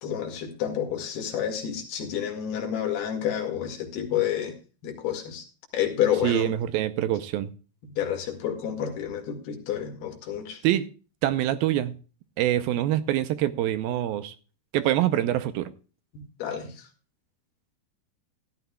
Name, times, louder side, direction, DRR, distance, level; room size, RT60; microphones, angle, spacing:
voice 1, 0.0-4.5 4.8-5.4 5.7-6.5 7.9-10.6 16.1-16.7, left 9 dB, 80° left, 4.0 m, -29 dB
voice 2, 6.2-7.5 10.6-10.9 11.2-12.0 12.4-14.3 14.7-15.7, right 13 dB, 80° right, 2.4 m, -25 dB
16.0 x 12.5 x 2.3 m
omnidirectional pair, 4.5 m